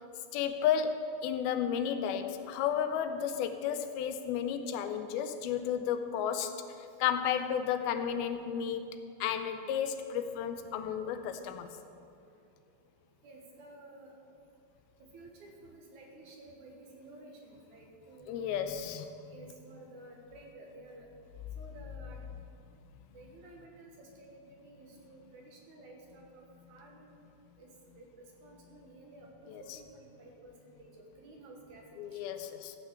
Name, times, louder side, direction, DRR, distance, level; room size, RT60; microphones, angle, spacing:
voice 1, 0.3-8.9 9.2-11.8 18.3-19.3 29.5-29.6 32.0-32.8, left 8 dB, 90° left, 8 dB, 2.6 m, -33 dB
voice 2, 13.2-14.2 15.0-18.6 19.3-21.1 21.6-22.3 23.1-27.2 27.6-27.7 28.0-28.1 28.4-32.2, right 2 dB, 60° right, 0 dB, 2.5 m, -53 dB
14.5 x 5.9 x 7.9 m, 2.7 s
omnidirectional pair, 4.3 m